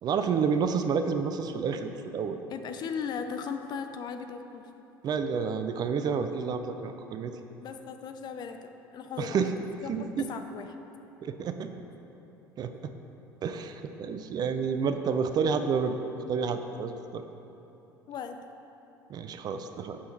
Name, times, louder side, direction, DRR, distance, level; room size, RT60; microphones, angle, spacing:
voice 1, 0.0-2.4 5.0-7.3 9.2-9.5 9.9-10.3 11.2-11.7 12.6-12.9 13.4-16.0 16.3-17.2 19.1-20.0, right 6 dB, 35° right, 8 dB, 0.5 m, -29 dB
voice 2, 2.5-4.7 7.6-9.4 9.8-9.9 10.2-10.8 18.1-18.4, left 6 dB, 35° left, 7 dB, 0.5 m, -37 dB
8.3 x 5.7 x 4.3 m, 3.0 s
figure-of-eight pair, 65°, 12 cm